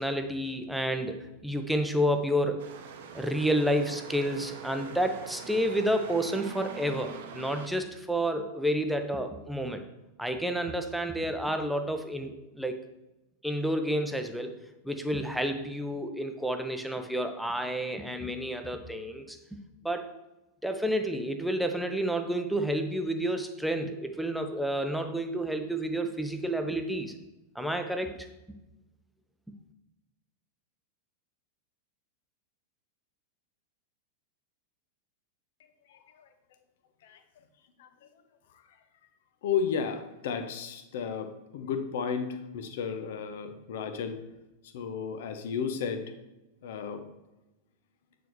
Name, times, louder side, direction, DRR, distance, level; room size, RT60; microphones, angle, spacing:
voice 1, 0.0-2.6 3.1-9.8 10.2-12.8 13.4-14.5 14.8-19.4 19.8-20.1 20.6-27.1 27.5-28.3, equal, ahead, 5 dB, 0.7 m, -30 dB
sound 1, 2.6-7.7, right 7 dB, 55° right, 0.7 m, -44 dB
voice 2, 35.9-36.3 37.0-37.2 37.8-38.1 39.4-44.2 44.7-46.1 46.6-47.0, left 6 dB, 55° left, 8 dB, 0.7 m, -33 dB
9.0 x 4.5 x 3.1 m, 0.99 s
figure-of-eight pair, 90°, 0 cm